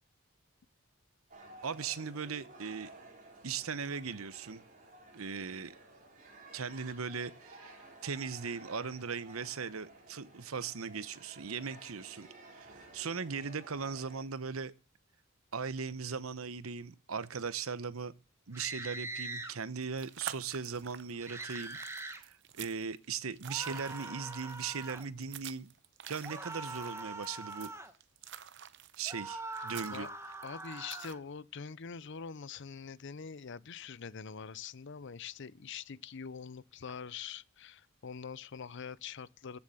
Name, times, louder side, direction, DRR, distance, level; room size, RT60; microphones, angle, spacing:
sound 1, 1.3-14.2, right 2 dB, 40° right, 4.7 m, -54 dB
voice 1, 1.6-2.9 3.4-4.6 5.1-5.7 6.5-14.7 15.5-18.1 18.5-25.7 26.1-27.7 29.0-30.1, right 5 dB, 90° right, 0.9 m, -39 dB
sound 2, 18.5-19.5 21.2-22.2 23.5-25.1 26.2-27.9 29.1-31.2, right 2 dB, 15° right, 1.2 m, -43 dB
sound 3, 19.6-31.1, right 9 dB, 60° right, 0.8 m, -49 dB
voice 2, 30.4-39.6, left 6 dB, 60° left, 0.6 m, -44 dB
14.5 x 7.2 x 7.8 m
head